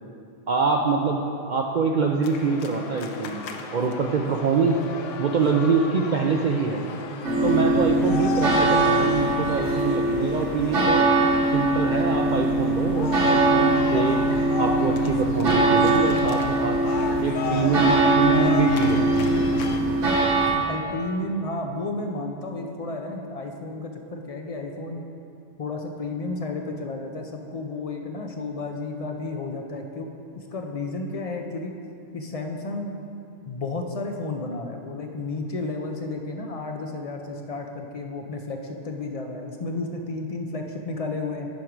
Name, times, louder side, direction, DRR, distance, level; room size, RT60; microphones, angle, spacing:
voice 1, 0.5-4.8 5.2-6.8 7.4-11.0 11.5-14.2 14.6-16.8 17.2-19.2, right 5 dB, 60° right, 1 dB, 0.5 m, -24 dB
sound 1, 2.2-19.8, left 5 dB, 85° left, 1.0 m, -35 dB
sound 2, 7.2-20.5, right 2 dB, 80° right, 1.5 m, -22 dB
voice 2, 20.5-25.1 25.6-30.2 30.5-31.7 32.1-32.9 33.5-41.5, left 2 dB, 45° left, 3 dB, 0.4 m, -32 dB
10.5 x 4.6 x 4.9 m, 2.5 s
omnidirectional pair, 1.3 m